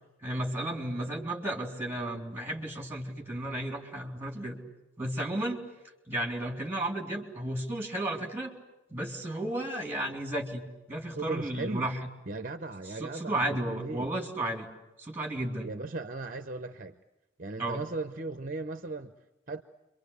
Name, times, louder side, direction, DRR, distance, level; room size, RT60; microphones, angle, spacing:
voice 1, 0.2-4.6 5.0-5.6 6.1-8.5 8.9-12.0 13.0-14.7 15.0-15.7 17.6-17.8, right 1 dB, 10° right, 3.7 m, -33 dB
voice 2, 11.2-11.9 12.3-14.1 15.6-17.0 17.4-19.2 19.5-19.6, right 3 dB, 40° right, 0.9 m, -37 dB
29.5 x 24.5 x 8.2 m
head